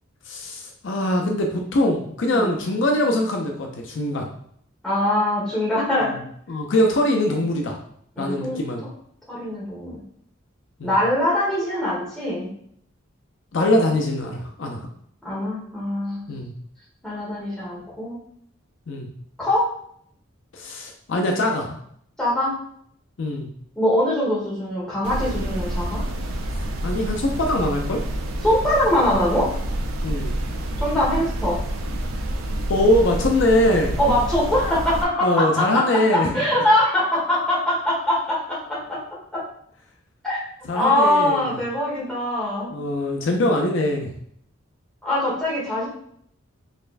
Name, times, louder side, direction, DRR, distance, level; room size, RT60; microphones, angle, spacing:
voice 1, 0.3-4.3 6.0-6.2 6.5-7.8 8.2-8.8 10.8-10.9 13.5-14.9 16.3-16.5 18.9-19.1 20.5-21.8 23.2-23.5 26.8-28.0 30.0-30.3 32.7-34.0 35.2-36.4 40.6-41.4 42.7-44.1, left 1 dB, 60° left, 2 dB, 0.5 m, -22 dB
voice 2, 4.8-6.1 8.2-8.6 9.3-10.0 10.8-12.5 15.2-16.2 17.0-18.2 19.4-19.7 22.2-22.5 23.8-26.0 28.4-29.5 30.8-31.6 34.0-39.0 39.3-39.4 40.2-40.4 40.7-42.7 45.0-45.9, left 1 dB, 5° left, -7 dB, 1.3 m, -22 dB
sound 1, 25.0-35.0, right 1 dB, 90° right, 0.5 m, -28 dB
4.1 x 3.2 x 2.5 m, 0.66 s
head